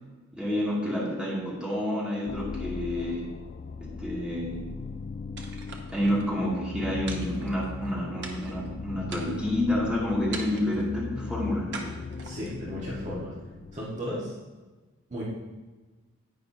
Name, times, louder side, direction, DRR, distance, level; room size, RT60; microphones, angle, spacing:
voice 1, 0.3-3.3 3.8-4.7 5.9-11.9, left 1 dB, 5° right, -6 dB, 2.5 m, -29 dB
sound 1, 2.3-14.1, left 4 dB, 40° left, 0.3 m, -38 dB
sound 2, 5.4-6.3 7.1-7.9 8.2-8.7 9.1-9.6 10.3-10.9 11.7-12.6, right 4 dB, 60° right, 1.2 m, -42 dB
voice 2, 12.2-13.3 13.7-14.3 15.1-15.2, equal, 35° right, -6 dB, 1.7 m, -34 dB
10.5 x 8.9 x 2.9 m, 1.2 s
head